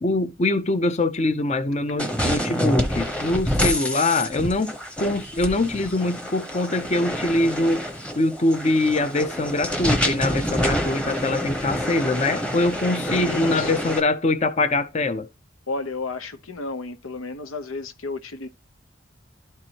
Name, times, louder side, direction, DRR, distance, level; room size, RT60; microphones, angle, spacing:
voice 1, 0.0-4.7 5.0-7.9 8.2-15.3, left 2 dB, 35° left, 0.6 m, -23 dB
sound 1, 2.0-14.0, equal, 5° left, 0.9 m, -27 dB
voice 2, 13.1-13.7 15.7-18.5, left 3 dB, 90° left, 0.9 m, -32 dB
12.0 x 4.7 x 2.8 m
head